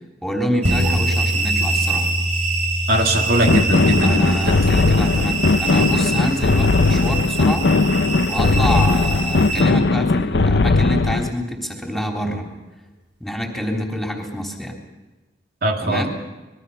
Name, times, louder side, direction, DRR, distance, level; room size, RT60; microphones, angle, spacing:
voice 1, 0.2-2.1 4.0-7.7 8.3-12.4 13.2-14.8 15.8-16.1, equal, ahead, 1 dB, 3.4 m, -26 dB
sound 1, 0.6-9.6, right 4 dB, 35° right, 7.2 m, -26 dB
sound 2, 0.6-9.4 9.9-10.0, left 1 dB, 85° right, 5.5 m, -27 dB
voice 2, 2.9-4.5 15.6-16.1, right 1 dB, 55° right, 2 dB, 2.2 m, -20 dB
sound 3, 3.5-11.3, left 3 dB, 65° left, 0.7 m, -18 dB
26.0 x 21.5 x 5.7 m, 1.1 s
head